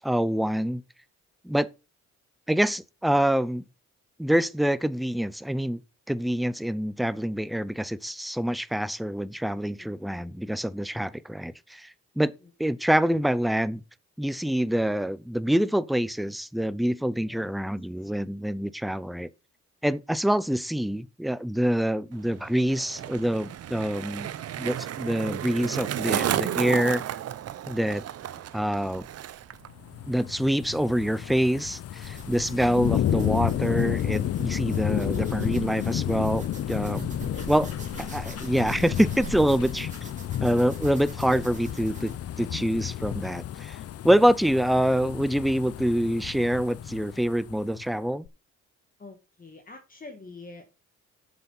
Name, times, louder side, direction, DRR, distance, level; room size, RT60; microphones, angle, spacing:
voice 1, 0.0-0.8 1.4-1.7 2.5-3.6 4.2-5.8 6.1-12.3 12.6-13.8 14.2-19.3 19.8-24.3 24.6-27.0 27.7-28.0 28.5-29.1 30.1-37.1 37.5-37.7 38.0-40.1 40.4-42.1 42.4-43.8 44.0-48.3, equal, ahead, 0.6 m, -26 dB
Skateboard, 22.1-29.7 29.9-30.4, right 11 dB, 55° right, 0.7 m, -33 dB
sound 1, 29.7-47.8 48.3-48.4, left 11 dB, 50° left, 0.6 m, -31 dB
sound 2, 32.0-42.2, right 3 dB, 25° right, 2.8 m, -43 dB
voice 2, 49.0-50.7, left 3 dB, 30° left, 1.6 m, -46 dB
7.6 x 7.1 x 5.5 m
cardioid pair, 90°, 30 cm